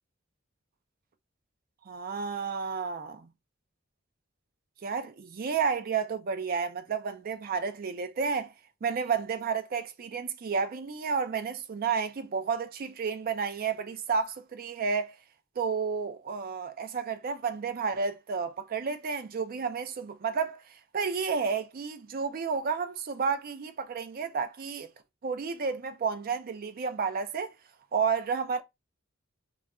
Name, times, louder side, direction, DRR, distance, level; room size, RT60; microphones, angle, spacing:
voice 1, 1.9-3.3 4.8-8.5 8.8-15.2 15.6-24.9 25.2-27.5 27.9-28.6, right 5 dB, 45° right, 0.4 m, -31 dB
2.3 x 2.1 x 3.6 m
head